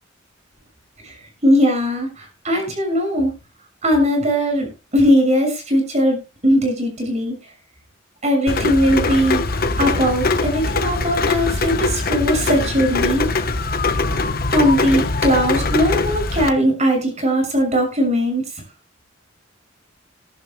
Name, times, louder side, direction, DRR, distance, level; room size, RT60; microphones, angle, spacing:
voice 1, 1.4-3.3 3.8-7.4 8.2-9.5 9.8-13.3 14.5-18.4, equal, 35° right, 4 dB, 6.4 m, -19 dB
Rain, 8.5-16.5, left 3 dB, 45° left, 1.2 m, -22 dB
20.5 x 11.0 x 2.2 m, 0.29 s
head